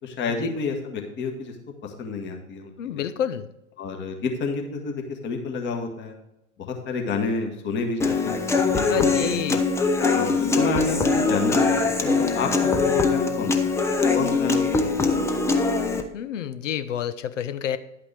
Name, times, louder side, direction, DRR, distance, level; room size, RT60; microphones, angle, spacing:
voice 1, 0.0-1.5 1.8-3.0 3.8-6.1 6.6-9.4 10.1-13.8 14.1-15.5, left 4 dB, 25° left, 3 dB, 1.6 m, -30 dB
voice 2, 2.8-3.5 8.9-9.6 16.1-17.8, left 9 dB, 60° left, 15 dB, 0.8 m, -29 dB
Human voice / Acoustic guitar, 8.0-16.0, left 4 dB, 5° left, 0.5 m, -22 dB
11.0 x 8.5 x 3.4 m, 0.88 s
figure-of-eight pair, 95°, 42 cm